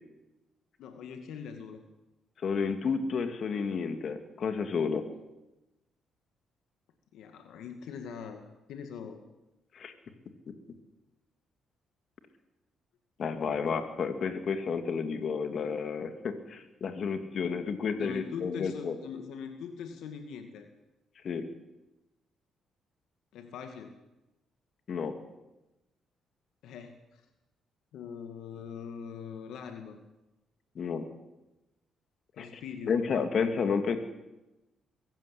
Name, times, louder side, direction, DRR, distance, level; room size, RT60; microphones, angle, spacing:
voice 1, 0.8-1.8 7.1-8.4 8.7-9.2 18.0-20.7 23.3-23.9 26.6-27.2 27.9-30.0 32.4-33.0, left 6 dB, 80° left, 6 dB, 2.0 m, -42 dB
voice 2, 2.4-5.0 9.7-9.9 13.2-18.9 21.2-21.4 24.9-25.1 30.8-31.0 32.4-32.5 32.9-34.0, left 5 dB, 55° left, 7 dB, 2.6 m, -31 dB
23.0 x 15.0 x 8.6 m, 1.0 s
cardioid pair, 90°, 0 cm